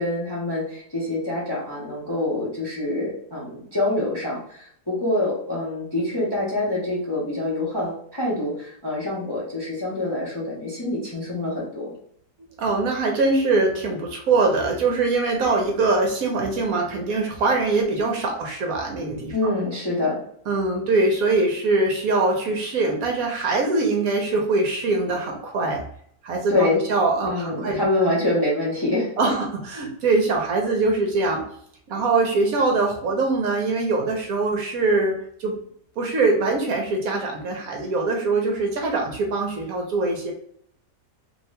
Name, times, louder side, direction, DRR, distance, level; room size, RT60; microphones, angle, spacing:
voice 1, 0.0-11.9 19.3-20.2 26.5-26.8 27.2-29.3, left 2 dB, 20° left, -5 dB, 0.6 m, -25 dB
voice 2, 12.6-19.3 20.5-25.8 26.2-27.8 29.2-31.4 31.9-35.6 36.0-40.3, right 3 dB, 70° right, 2 dB, 1.0 m, -23 dB
2.9 x 2.8 x 3.2 m, 0.66 s
omnidirectional pair, 1.8 m